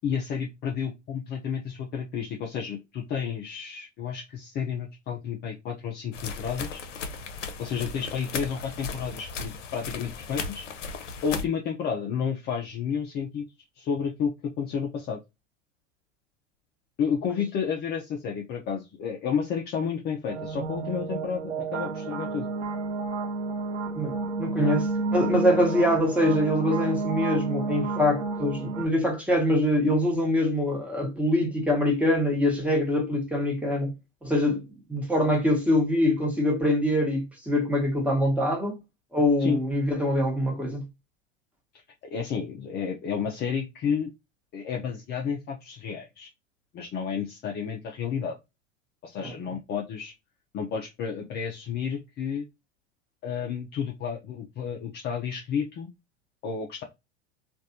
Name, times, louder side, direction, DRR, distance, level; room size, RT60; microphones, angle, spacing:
voice 1, 0.0-6.8 7.6-10.6 11.2-13.5 13.8-15.2 17.0-22.5 39.4-39.6 42.1-44.1 44.5-46.3 46.7-48.4 49.0-50.1 50.5-52.4 53.2-55.9 56.4-56.8, left 7 dB, 25° left, 0.5 m, -31 dB
sound 1, 6.1-11.4, left 5 dB, 75° left, 0.7 m, -36 dB
A Hint Of Rachmaninoff, 20.3-28.9, right 3 dB, 85° right, 0.8 m, -31 dB
voice 2, 23.9-33.9 34.2-38.8 39.1-40.8 49.2-49.3, left 1 dB, 5° right, 1.2 m, -24 dB
3.2 x 2.5 x 2.7 m
hypercardioid pair, 95°, 37 cm